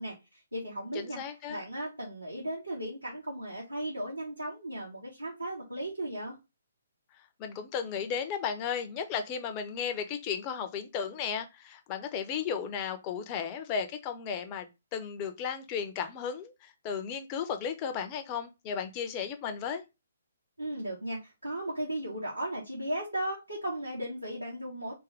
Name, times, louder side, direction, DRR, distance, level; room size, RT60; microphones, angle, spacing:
voice 1, 0.0-1.2 1.5-6.4 20.6-24.9, right 1 dB, 85° right, 1.8 m, -36 dB
voice 2, 0.9-1.6 7.4-19.8, left 7 dB, 25° left, 0.6 m, -35 dB
3.6 x 2.9 x 3.3 m
figure-of-eight pair, 130°, 0 cm